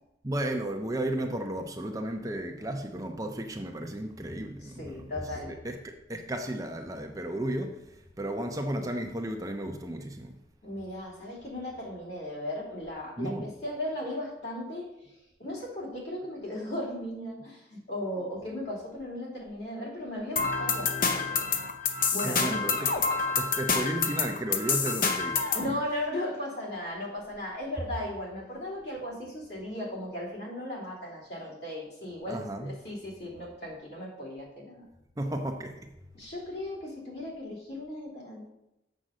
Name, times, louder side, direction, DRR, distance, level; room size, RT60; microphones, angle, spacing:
voice 1, 0.2-5.0 5.6-5.8 6.1-7.8 8.2-10.3 13.2-13.5 22.2-22.9 23.4-25.5 32.3-32.7 35.2-35.7, right 1 dB, 20° right, 4 dB, 0.6 m, -33 dB
voice 2, 4.6-5.5 10.6-21.4 22.1-22.6 25.5-34.8 36.1-38.5, left 1 dB, 65° left, -5 dB, 3.2 m, -37 dB
sound 1, 20.4-25.7, left 5 dB, 45° left, 0.8 m, -28 dB
7.4 x 5.2 x 6.4 m, 0.90 s
head